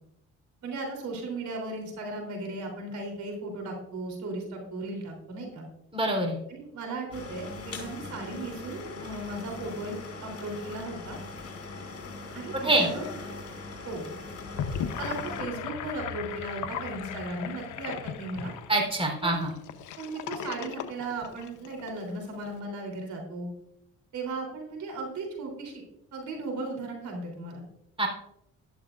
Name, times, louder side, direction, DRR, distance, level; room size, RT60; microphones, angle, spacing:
voice 1, 0.6-5.7 6.5-9.9 10.2-11.2 12.3-13.0 13.8-14.1 15.0-18.5 19.2-19.4 20.0-23.5 24.1-25.8 26.1-27.6, right 2 dB, 70° right, 1 dB, 3.6 m, -36 dB
voice 2, 5.9-6.4 12.6-12.9 18.7-19.5 28.0-28.1, right 2 dB, 20° right, 1 dB, 3.9 m, -25 dB
sound 1, 7.1-15.4, left 3 dB, 55° left, 3.9 m, -40 dB
Gurgling / Sink (filling or washing), 14.4-21.9, left 8 dB, 80° left, 1.0 m, -37 dB
12.5 x 12.0 x 2.6 m, 0.80 s
cardioid pair, 90°, 30 cm